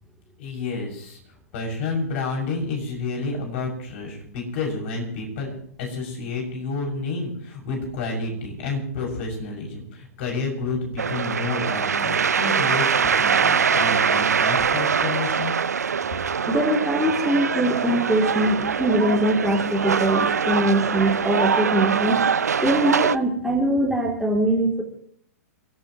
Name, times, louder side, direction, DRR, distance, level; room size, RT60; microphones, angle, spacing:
voice 1, 0.4-1.2 1.5-5.5 5.8-15.5, left 3 dB, 50° left, 0 dB, 6.9 m, -29 dB
sound 1, 11.0-23.2, right 6 dB, 80° right, 0.6 m, -23 dB
voice 2, 16.5-22.2 22.6-24.8, right 1 dB, ahead, -2 dB, 3.2 m, -22 dB
29.0 x 14.0 x 3.1 m, 0.62 s
hypercardioid pair, 115°, 9 cm